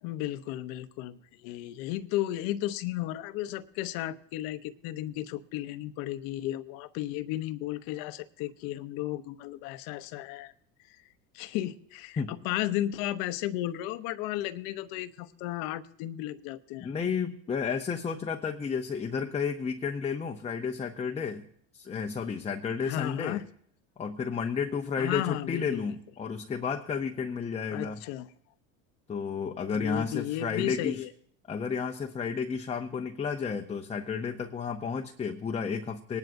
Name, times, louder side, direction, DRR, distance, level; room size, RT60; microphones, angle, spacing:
voice 1, 0.0-10.5 11.3-16.9 22.8-23.4 25.0-25.9 27.7-28.3 29.7-31.1, left 14 dB, 65° left, 13 dB, 0.8 m, -34 dB
voice 2, 16.8-21.5 21.7-23.4 24.0-28.0 29.1-31.0 31.5-36.2, left 6 dB, 15° left, 4 dB, 0.7 m, -32 dB
20.0 x 10.5 x 2.6 m, 0.64 s
supercardioid pair, 100°, 38 cm